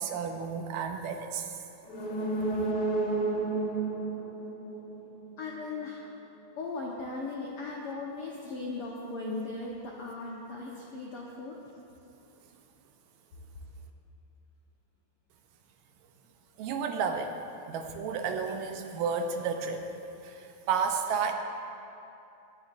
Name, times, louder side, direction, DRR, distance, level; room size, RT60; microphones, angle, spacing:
voice 1, 0.0-1.6 16.6-17.4 17.7-19.9 20.2-21.3, right 6 dB, 80° right, 5 dB, 2.2 m, -32 dB
sound 1, 1.8-5.5 5.9-6.0, right 3 dB, 50° left, 1.6 m, -31 dB
voice 2, 5.4-6.1 6.6-11.5, left 3 dB, 75° left, -4 dB, 1.3 m, -38 dB
22.5 x 10.5 x 2.5 m, 2.8 s
omnidirectional pair, 4.1 m